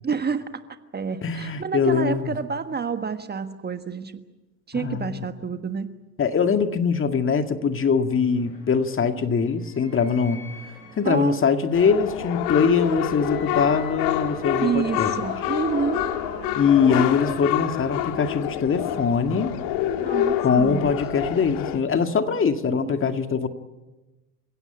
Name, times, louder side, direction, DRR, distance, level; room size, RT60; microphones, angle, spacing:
voice 1, 0.0-0.6 0.9-4.2 4.7-5.9 11.0-11.4 12.6-13.1 14.6-16.1 20.0-20.9 22.7-23.1, right 6 dB, 20° right, 9 dB, 1.5 m, -28 dB
voice 2, 1.2-2.3 4.7-5.3 6.2-10.4 11.0-15.1 16.5-19.6 20.4-23.5, left 6 dB, 25° left, 7 dB, 1.9 m, -22 dB
sound 1, 7.8-21.5, left 2 dB, 90° left, 7.2 m, -41 dB
sound 2, 11.7-21.8, left 12 dB, 55° left, 2.1 m, -27 dB
29.0 x 17.0 x 8.9 m, 1.1 s
hypercardioid pair, 85°, 48 cm